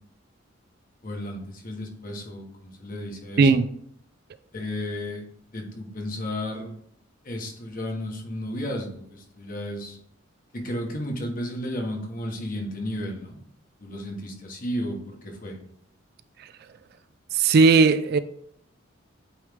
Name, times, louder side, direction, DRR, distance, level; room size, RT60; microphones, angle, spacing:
voice 1, 1.0-3.5 4.5-5.3 5.5-6.7 7.2-10.0 10.5-13.4 13.8-15.6, left 1 dB, 45° left, 1.2 m, -33 dB
voice 2, 17.3-18.2, right 4 dB, 55° right, 0.3 m, -17 dB
8.4 x 3.2 x 3.5 m
head